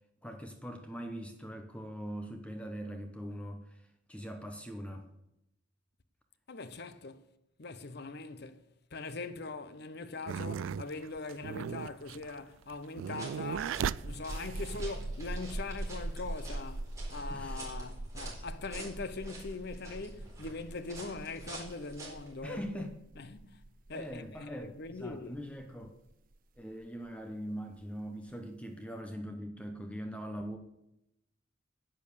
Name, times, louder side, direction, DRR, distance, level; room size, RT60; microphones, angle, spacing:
voice 1, 0.2-3.8 4.1-5.1 17.3-17.6 22.4-23.0 23.9-25.9 26.6-30.6, equal, 5° left, 0.9 m, -42 dB
voice 2, 6.5-7.3 7.6-22.8 23.2-23.6 23.9-25.4, left 3 dB, 55° left, 0.8 m, -42 dB
sound 1, 10.3-15.2 15.9-16.8, right 8 dB, 80° right, 0.3 m, -37 dB
sound 2, 13.0-22.3, right 2 dB, 15° right, 4.2 m, -49 dB
sound 3, 13.4-26.8, right 1 dB, 45° right, 0.7 m, -42 dB
10.5 x 9.0 x 6.7 m
head